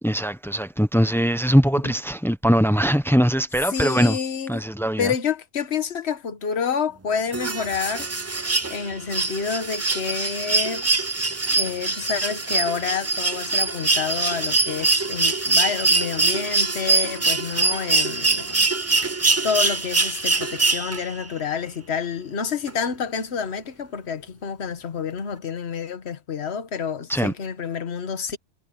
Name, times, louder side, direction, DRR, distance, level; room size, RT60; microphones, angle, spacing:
voice 1, 0.0-4.2 4.5-5.1 27.1-27.3, equal, ahead, 0.7 m, -21 dB
voice 2, 3.7-4.6 5.0-8.1 8.7-10.9 11.5-19.1 19.4-28.4, left 6 dB, 55° left, 1.5 m, -28 dB
sound 1, 7.3-21.2 22.7-22.8, right 3 dB, 20° right, 0.4 m, -23 dB
omnidirectional pair, 1.3 m